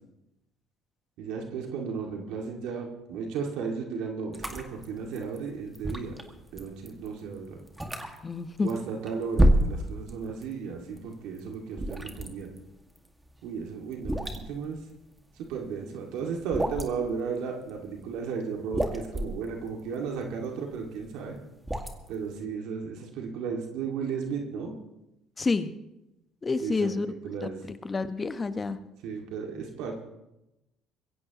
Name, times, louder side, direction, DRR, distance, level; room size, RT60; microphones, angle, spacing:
voice 1, 1.2-6.2 6.5-7.6 8.6-12.5 13.4-14.8 15.3-21.4 22.1-24.7 26.6-27.6 29.0-30.0, right 5 dB, 75° right, 1 dB, 2.2 m, -34 dB
sound 1, 4.3-10.5 10.8-15.8 16.2-17.1 17.7-18.2 18.5-22.3, equal, 10° right, 2.0 m, -29 dB
voice 2, 8.2-8.7 25.4-25.7 26.4-27.1 27.4-28.8, left 4 dB, 30° left, 10 dB, 1.1 m, -29 dB
22.0 x 16.0 x 3.0 m, 0.93 s
supercardioid pair, 80°, 0 cm